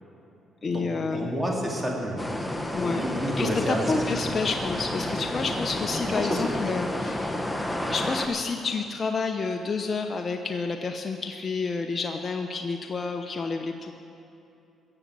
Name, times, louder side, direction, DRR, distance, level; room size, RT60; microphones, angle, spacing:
voice 1, 0.6-1.3 2.7-3.0 3.4-7.4 7.9-13.9, left 4 dB, 40° left, 4 dB, 0.7 m, -29 dB
voice 2, 1.1-2.2 2.9-3.8 4.1-4.3 6.2-6.5, equal, 10° right, -1 dB, 2.9 m, -29 dB
sound 1, 2.2-8.3, left 1 dB, 5° left, 1.1 m, -30 dB
14.5 x 7.4 x 8.7 m, 2.7 s
cardioid pair, 90°, 0 cm